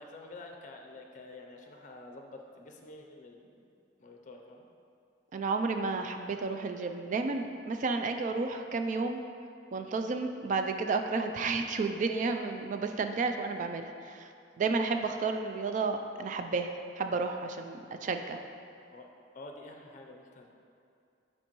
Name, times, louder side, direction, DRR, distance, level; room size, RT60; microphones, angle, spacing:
voice 1, 0.0-3.5 4.0-4.7 18.9-19.1 19.3-20.5, left 2 dB, 45° left, 2 dB, 0.5 m, -48 dB
voice 2, 5.3-9.2 9.7-14.3 14.6-18.4, right 4 dB, 45° right, 6 dB, 0.3 m, -32 dB
8.9 x 4.4 x 3.0 m, 2.5 s
head